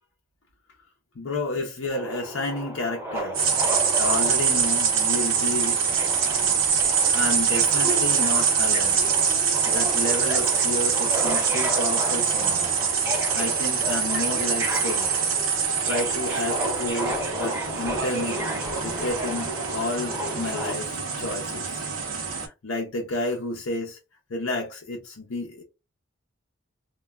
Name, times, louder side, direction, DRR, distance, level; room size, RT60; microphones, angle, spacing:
voice 1, 1.2-3.5 4.0-5.8 7.1-9.0 9.7-12.7 13.3-15.1 15.8-21.9 22.4-24.0 24.3-25.6, left 2 dB, 75° left, 0.6 m, -31 dB
Subway metro underground, 1.9-20.7, right 1 dB, 10° right, 0.6 m, -33 dB
sound 1, 3.3-22.5, right 6 dB, 75° right, 0.6 m, -24 dB
3.1 x 2.2 x 2.3 m
head